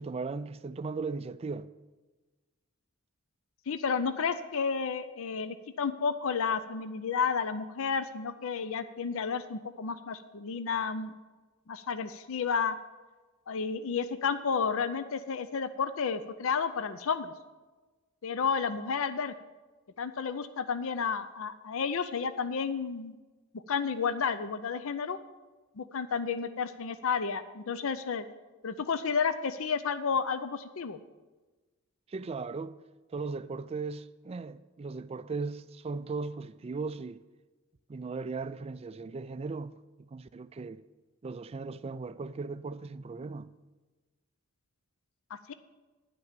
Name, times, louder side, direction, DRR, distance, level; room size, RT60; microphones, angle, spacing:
voice 1, 0.0-1.7 32.1-32.8 33.1-37.2 37.9-40.8 41.2-43.5, right 4 dB, 25° right, 0.3 m, -37 dB
voice 2, 3.7-11.1 11.7-12.8 13.5-17.3 18.2-19.3 20.0-23.2 23.5-25.2 25.8-28.2 28.6-31.0 45.5-45.6, left 6 dB, 65° left, 0.5 m, -31 dB
11.0 x 5.9 x 7.4 m
head